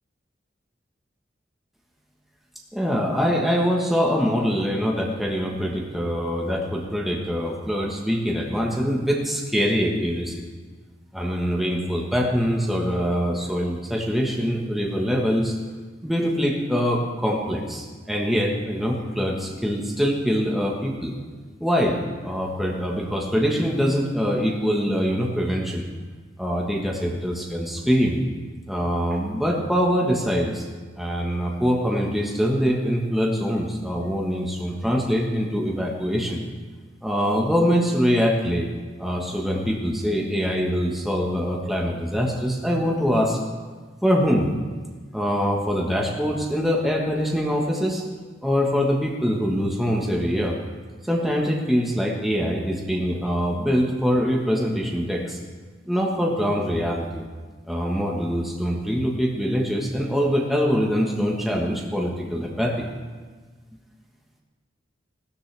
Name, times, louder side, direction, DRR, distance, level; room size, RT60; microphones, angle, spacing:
voice 1, 2.7-10.4 11.1-15.5 16.0-21.1 21.6-25.9 26.4-28.2 28.7-30.7 31.0-36.4 37.0-38.7 39.0-43.4 44.0-44.5 45.1-48.0 48.4-50.5 51.0-55.4 55.9-57.2 57.7-62.9, equal, ahead, -2 dB, 1.3 m, -24 dB
17.5 x 12.5 x 3.4 m, 1.4 s
head